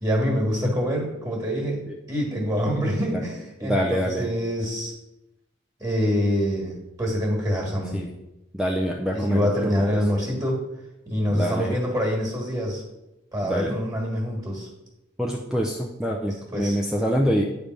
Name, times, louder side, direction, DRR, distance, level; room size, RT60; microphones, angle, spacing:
voice 1, 0.0-1.8 2.1-4.9 5.8-8.0 9.1-10.6 11.1-12.8 13.3-14.7 16.2-16.8, equal, 20° right, -1 dB, 1.6 m, -25 dB
voice 2, 3.6-4.3 7.9-8.1 8.5-9.5 9.7-10.0 11.3-11.8 13.4-13.7 15.2-17.5, equal, 5° right, 0 dB, 0.4 m, -25 dB
8.5 x 3.4 x 5.2 m, 0.94 s
head